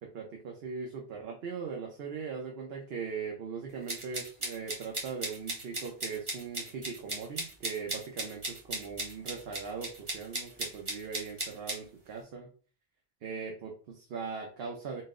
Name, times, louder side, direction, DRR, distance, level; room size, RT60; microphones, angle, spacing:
voice 1, 0.1-12.5 13.2-15.0, right 5 dB, 70° right, 1 dB, 0.9 m, -40 dB
sound 1, 3.9-11.8, right 2 dB, 30° right, 0.9 m, -37 dB
4.2 x 2.1 x 3.6 m, 0.39 s
omnidirectional pair, 1.1 m